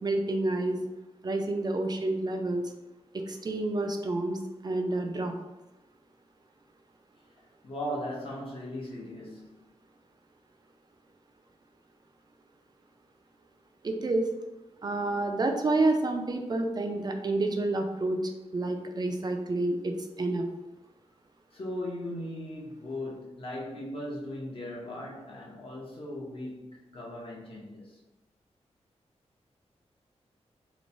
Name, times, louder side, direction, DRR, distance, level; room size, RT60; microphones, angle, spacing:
voice 1, 0.0-0.8 1.2-2.6 3.1-5.3 13.8-14.3 14.8-18.2 18.5-20.5, right 2 dB, 35° right, 0.3 m, -29 dB
voice 2, 7.6-9.5 21.5-28.0, left 1 dB, 50° left, 0.8 m, -38 dB
3.0 x 2.1 x 2.6 m
wide cardioid pair, 105°, 12 cm